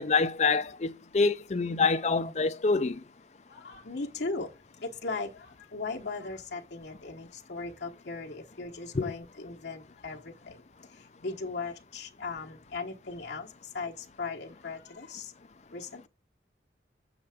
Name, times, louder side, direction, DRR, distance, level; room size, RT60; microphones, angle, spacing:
voice 1, 0.0-3.0 8.9-9.1, left 4 dB, 40° left, 0.5 m, -26 dB
voice 2, 3.5-4.5 4.8-10.6 11.2-13.5 13.7-15.3 15.7-16.1, left 3 dB, 75° left, 1.1 m, -38 dB
7.0 x 6.5 x 3.5 m
head